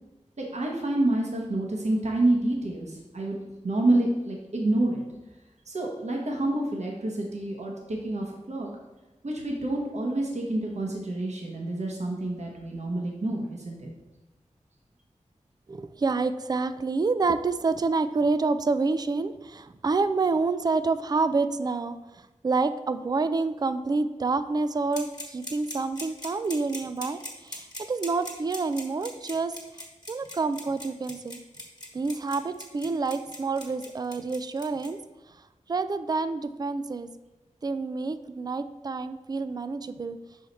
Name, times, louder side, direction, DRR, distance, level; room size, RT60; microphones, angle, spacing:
voice 1, 0.4-3.3 3.6-5.0 5.7-8.7 9.2-13.9, right 2 dB, 60° right, -1 dB, 1.1 m, -28 dB
voice 2, 15.7-29.6 30.1-31.4 31.9-35.0 35.3-35.4 35.7-37.1 37.6-40.2, right 3 dB, 30° right, 12 dB, 0.3 m, -28 dB
sound 1, 24.9-34.9, left 1 dB, 35° left, 1.5 m, -40 dB
5.7 x 4.8 x 4.1 m, 1.1 s
wide cardioid pair, 55°, 13 cm